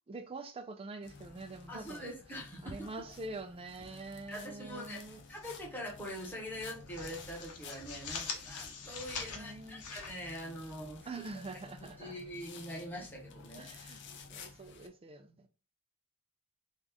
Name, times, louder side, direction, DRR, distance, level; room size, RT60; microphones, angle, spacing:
voice 1, 0.1-2.1 2.6-5.2 9.3-9.8 11.1-12.2 13.6-14.0 14.3-15.5, right 3 dB, 25° right, 0.4 m, -45 dB
sound 1, 1.0-14.9, left 4 dB, 55° left, 0.5 m, -53 dB
voice 2, 1.7-2.9 4.3-5.0 5.3-11.1 12.0-13.7, equal, 10° left, 1.1 m, -43 dB
sound 2, 4.7-5.6 5.9-6.1 6.5-11.0, left 5 dB, 85° left, 0.8 m, -44 dB
3.1 x 2.4 x 3.5 m
head